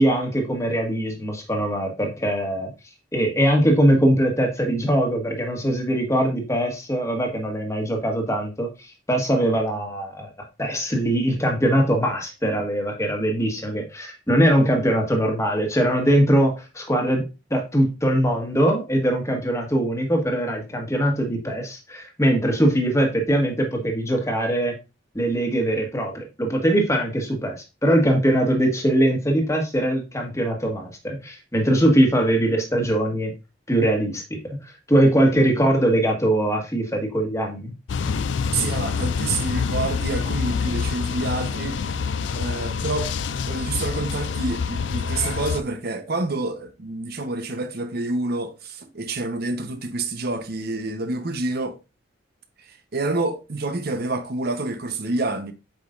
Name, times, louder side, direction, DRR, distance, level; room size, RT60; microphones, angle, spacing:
voice 1, 0.0-2.7 3.1-10.3 10.6-17.2 17.5-24.7 25.1-27.6 27.8-33.3 33.7-37.7, right 1 dB, 15° left, 1.5 m, -21 dB
sound 1, 37.9-45.6, left 5 dB, 75° left, 0.4 m, -26 dB
voice 2, 38.5-41.8 42.3-43.1 43.4-51.8 52.7-55.5, right 2 dB, 60° right, 1.0 m, -28 dB
7.7 x 5.2 x 2.5 m
head